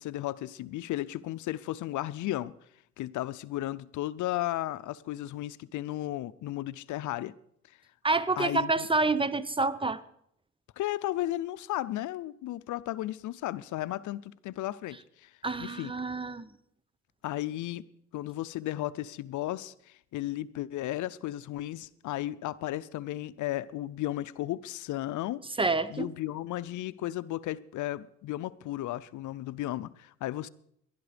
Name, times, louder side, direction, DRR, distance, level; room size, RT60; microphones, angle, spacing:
voice 1, 0.0-2.5 3.0-7.3 8.4-8.9 10.8-15.3 15.6-15.9 17.2-17.8 18.1-25.5 25.9-30.5, left 15 dB, 80° left, 0.6 m, -34 dB
voice 2, 8.0-10.0 15.4-16.4 25.6-26.1, right 3 dB, 15° right, 0.8 m, -28 dB
19.0 x 12.0 x 5.1 m
cardioid pair, 90°, 30 cm